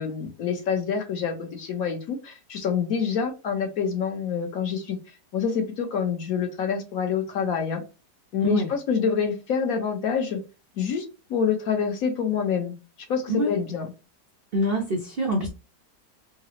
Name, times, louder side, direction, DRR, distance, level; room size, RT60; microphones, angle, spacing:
voice 1, 0.0-5.0 5.3-7.8 8.3-10.4 10.8-11.0 11.3-12.7 13.1-13.9, left 6 dB, 60° left, 4 dB, 1.1 m, -26 dB
voice 2, 14.5-15.5, right 1 dB, 75° right, 1 dB, 0.5 m, -25 dB
3.7 x 2.0 x 2.7 m, 0.29 s
omnidirectional pair, 1.9 m